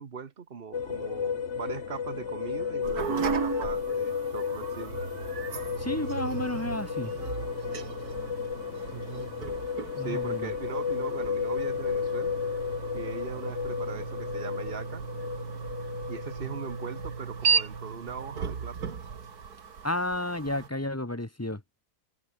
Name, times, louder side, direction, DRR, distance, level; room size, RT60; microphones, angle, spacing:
voice 1, 0.0-5.0 8.9-9.5 10.0-12.4 12.9-15.0 16.1-19.0, right 6 dB, 40° right, 1.2 m, -40 dB
sound 1, 0.7-17.9, left 6 dB, 50° left, 1.5 m, -33 dB
Wind instrument woodwind instrument, 2.1-9.5, right 2 dB, 60° right, 5.4 m, -54 dB
sound 2, 2.8-20.7, right 6 dB, 90° right, 2.4 m, -35 dB
voice 2, 5.8-7.1 10.0-10.5 19.8-21.6, left 1 dB, 10° left, 1.5 m, -32 dB
omnidirectional pair, 1.6 m